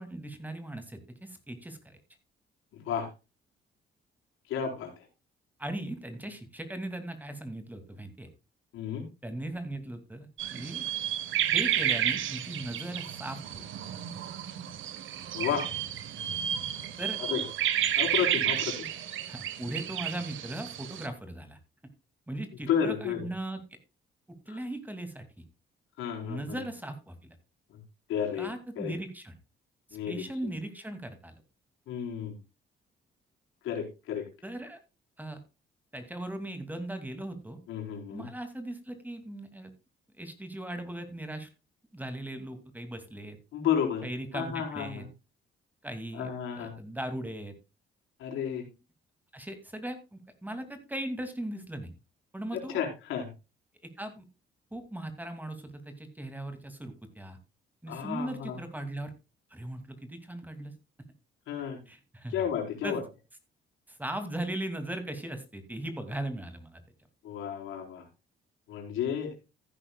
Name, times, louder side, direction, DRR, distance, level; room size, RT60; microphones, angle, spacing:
voice 1, 0.0-2.0 5.6-8.3 9.2-10.8 11.5-13.6 17.0-17.5 19.3-21.6 22.3-23.6 24.5-25.2 26.2-27.3 28.4-29.3 30.1-31.4 34.4-34.8 35.2-35.4 35.9-37.6 38.1-39.7 40.2-41.5 41.9-43.4 44.0-45.0 45.8-47.5 49.3-51.9 52.3-52.8 53.8-54.2 54.7-57.4 57.8-59.1 59.5-60.7 61.9-62.4 62.8-63.0 63.9-66.8, right 1 dB, 10° right, 8 dB, 2.6 m, -38 dB
voice 2, 4.5-5.0 8.7-9.0 15.3-15.7 17.3-17.4 17.9-18.9 22.7-23.2 24.5-24.6 26.0-26.6 28.1-28.5 28.8-28.9 29.9-30.5 31.9-32.3 33.6-34.2 37.7-38.3 43.5-44.0 44.3-45.0 46.1-46.7 48.2-48.6 52.5-53.3 57.9-58.6 61.5-61.8 62.3-63.0 67.2-68.0 68.7-69.3, left 8 dB, 85° left, 1 dB, 4.5 m, -32 dB
sound 1, 10.4-21.1, right 11 dB, 80° right, 1.4 m, -31 dB
15.0 x 9.9 x 2.4 m, 0.28 s
cardioid pair, 90°, 20 cm